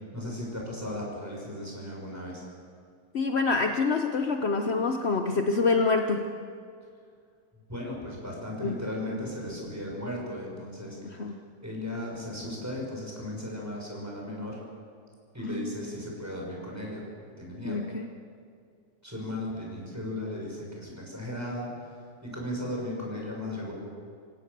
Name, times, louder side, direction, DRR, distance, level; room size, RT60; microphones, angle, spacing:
voice 1, 0.1-2.4 7.7-14.6 15.3-17.0 17.4-17.8 19.0-23.7, left 1 dB, 5° right, -2 dB, 6.1 m, -36 dB
voice 2, 3.1-6.3 8.6-8.7 11.2-11.4 15.4-15.8 17.6-18.1, left 4 dB, 55° left, 5 dB, 0.7 m, -26 dB
27.0 x 17.0 x 6.8 m, 2.2 s
omnidirectional pair, 2.3 m